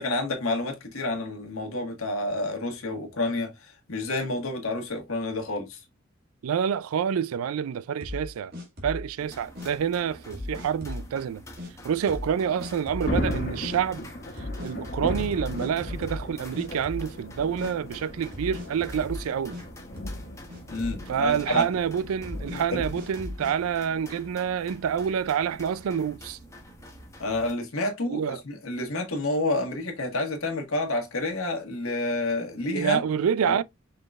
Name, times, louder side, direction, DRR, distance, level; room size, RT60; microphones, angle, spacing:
voice 1, 0.0-5.8 20.7-21.6 22.5-22.8 27.2-33.0 33.4-33.6, left 2 dB, 85° left, 1.5 m, -29 dB
voice 2, 6.4-8.5 8.8-11.4 11.8-14.0 14.6-19.6 21.1-26.4 28.1-28.4 32.7-33.6, right 8 dB, 90° right, 0.3 m, -27 dB
sound 1, 8.0-9.1 9.6-9.7 10.3-11.1 11.6-11.7 12.1-12.3 12.6-13.1 13.6-13.8 14.4-16.3 16.5-17.3 17.6-17.7 18.3-19.6 20.0-20.2 20.5-21.0 21.5-21.6 22.2-23.6, left 2 dB, 50° right, 2.0 m, -37 dB
sound 2, 9.2-27.5, equal, 15° left, 1.1 m, -47 dB
Thunder, 12.5-23.2, equal, 45° left, 1.1 m, -36 dB
5.5 x 3.8 x 2.4 m
head